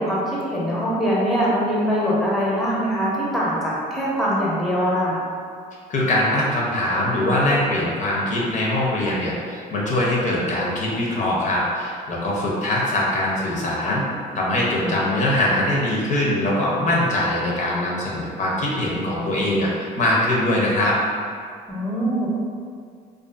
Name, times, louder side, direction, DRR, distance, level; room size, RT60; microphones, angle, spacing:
voice 1, 0.0-5.2 14.8-15.1 21.7-22.3, equal, ahead, -6 dB, 0.6 m, -23 dB
voice 2, 5.9-14.1 14.3-21.0, left 1 dB, 45° left, -4 dB, 0.5 m, -22 dB
2.5 x 2.4 x 2.3 m, 2.1 s
cardioid pair, 110°, 17 cm